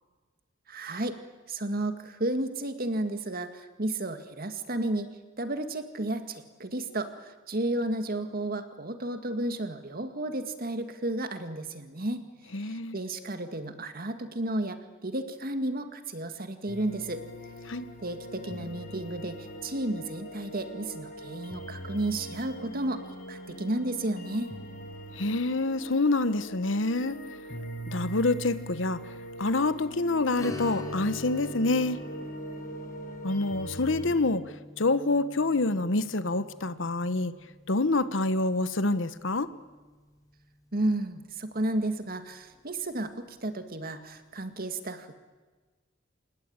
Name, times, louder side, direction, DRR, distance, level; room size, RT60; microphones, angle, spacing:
voice 1, 0.7-1.1 1.5-5.1 5.4-12.2 12.6-17.2 18.0-24.5 40.7-45.1, right 1 dB, 50° right, 8 dB, 2.1 m, -32 dB
voice 2, 12.5-13.0 17.7-17.9 25.2-27.2 27.9-29.0 29.4-32.0 33.2-34.4 34.8-37.3 37.7-39.5, left 2 dB, 90° left, 14 dB, 1.2 m, -27 dB
sound 1, 16.7-34.2, equal, 50° left, 5.3 m, -42 dB
Strum, 30.4-39.6 39.9-40.0 42.5-42.7 43.2-43.3, left 2 dB, 20° left, 4.1 m, -44 dB
27.0 x 20.0 x 9.0 m, 1.3 s
head